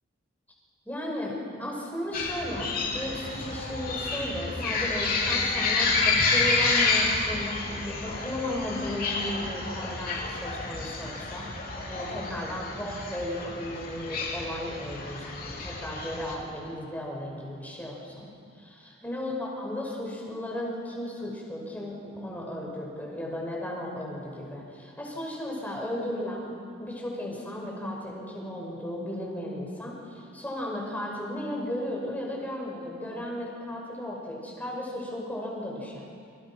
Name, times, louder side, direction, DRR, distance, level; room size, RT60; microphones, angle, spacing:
voice 1, 0.9-11.5 11.9-36.0, left 1 dB, 10° left, -2 dB, 6.0 m, -35 dB
sound 1, 2.1-16.3, left 3 dB, 45° left, 3.7 m, -29 dB
29.5 x 26.5 x 6.0 m, 2.4 s
head